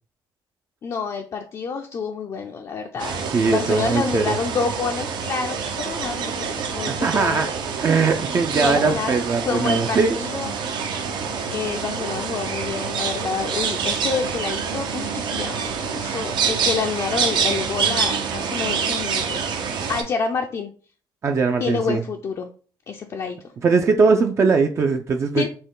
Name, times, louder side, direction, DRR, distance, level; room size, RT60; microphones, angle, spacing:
voice 1, 0.8-7.5 7.9-8.1 8.5-10.5 11.5-19.5 19.9-20.7 21.6-22.5 22.9-23.4 25.4-25.5, left 5 dB, 40° left, 3 dB, 0.4 m, -28 dB
sound 1, 3.0-20.0, right 6 dB, 70° right, 0.7 m, -26 dB
voice 2, 3.3-4.4 6.9-7.5 7.8-10.2 21.2-22.0 23.6-25.5, right 4 dB, 35° right, 4 dB, 0.4 m, -20 dB
4.4 x 2.9 x 3.8 m, 0.41 s
cardioid pair, 130°, 8 cm